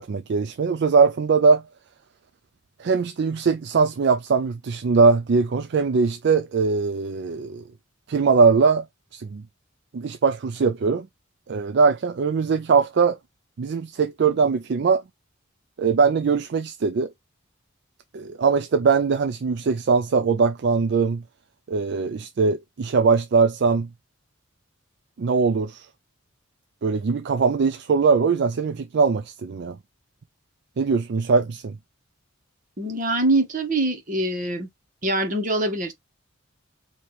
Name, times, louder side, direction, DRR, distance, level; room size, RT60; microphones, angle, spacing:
voice 1, 0.0-1.6 2.8-7.6 8.1-8.9 9.1-9.4 9.9-11.1 11.5-13.2 13.6-15.0 15.8-17.1 18.1-21.2 21.7-23.9 25.2-25.9 26.8-29.8 30.8-31.8, right 5 dB, 55° right, 0.4 m, -21 dB
voice 2, 32.8-34.7 35.0-35.9, right 2 dB, 40° right, 1.4 m, -24 dB
4.4 x 2.9 x 3.1 m
head